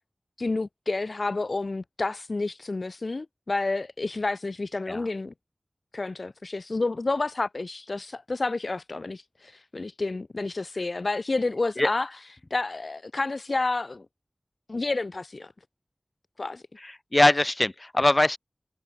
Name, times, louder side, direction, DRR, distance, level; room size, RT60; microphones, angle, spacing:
voice 1, 0.4-5.3 5.9-12.1 12.5-14.0 14.7-15.5 16.4-16.6, left 3 dB, 70° left, 1.4 m, -30 dB
voice 2, 16.8-18.4, left 2 dB, 35° left, 1.8 m, -22 dB
wide cardioid pair, 60°, 0 cm